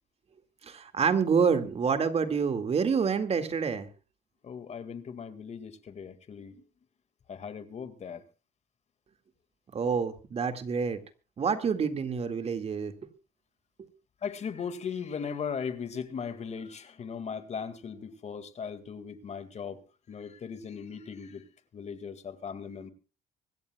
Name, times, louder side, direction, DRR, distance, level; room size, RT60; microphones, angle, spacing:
voice 1, 0.6-3.9 9.7-11.0 11.4-12.9 13.8-13.9, right 6 dB, 35° right, 2.0 m, -27 dB
voice 2, 4.4-6.6 7.3-8.2 14.2-19.8 20.1-21.4 21.7-22.9, left 6 dB, 40° left, 2.0 m, -38 dB
25.0 x 14.0 x 2.3 m
cardioid pair, 110°, 17 cm